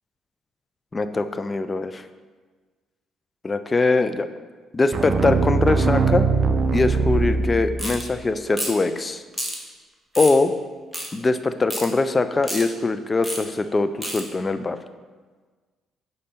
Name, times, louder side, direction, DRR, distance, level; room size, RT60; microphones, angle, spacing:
voice 1, 0.9-2.0 3.4-4.3 4.7-6.3 6.7-9.2 10.2-10.5 11.1-14.8, left 3 dB, 25° left, 11 dB, 0.4 m, -22 dB
sound 1, 4.9-8.1, right 4 dB, 45° right, 0.5 m, -21 dB
sound 2, 7.8-8.0 8.5-8.8 9.3-9.6 10.1-10.4 10.9-11.1 11.7-11.9 12.4-12.6 13.2-13.4 14.0-14.2, equal, 5° right, 1.2 m, -29 dB
5.3 x 5.2 x 4.3 m, 1.4 s
cardioid pair, 90°, 0 cm